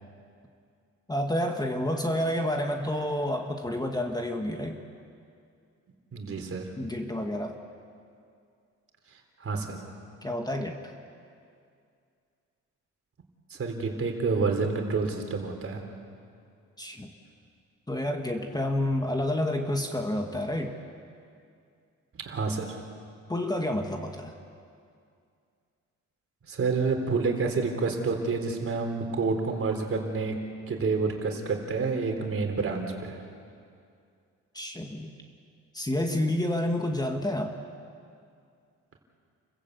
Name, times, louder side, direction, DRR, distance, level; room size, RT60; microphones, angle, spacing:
voice 1, 1.1-4.8 6.8-7.6 10.2-10.9 16.8-17.1 17.9-20.7 23.3-24.3 34.5-35.1 35.7-37.6, left 1 dB, 15° left, 3 dB, 1.8 m, -29 dB
voice 2, 6.1-6.6 9.4-9.8 13.5-15.8 22.1-22.8 26.5-30.4 30.7-33.2, right 4 dB, 45° right, 3 dB, 3.9 m, -28 dB
29.5 x 15.5 x 8.2 m, 2.4 s
cardioid pair, 90°, 30 cm